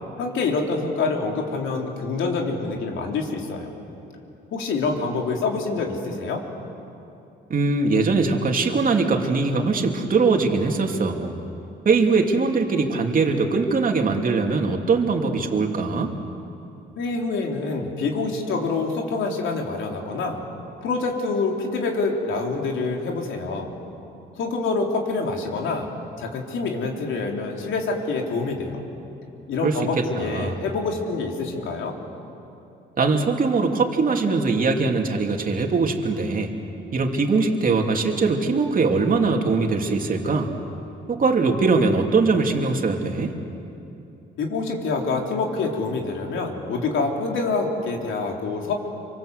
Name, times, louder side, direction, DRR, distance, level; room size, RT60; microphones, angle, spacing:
voice 1, 0.2-3.7 4.5-6.4 16.9-20.4 20.8-23.7 24.4-25.9 26.2-28.8 29.5-31.9 44.4-48.7, left 3 dB, 75° left, 1 dB, 3.8 m, -26 dB
voice 2, 7.5-11.3 11.8-16.1 29.6-30.6 33.0-36.5 36.9-40.5 41.1-43.3, right 4 dB, 45° right, 2 dB, 2.9 m, -21 dB
27.0 x 25.0 x 8.1 m, 2.8 s
cardioid pair, 90°, 20 cm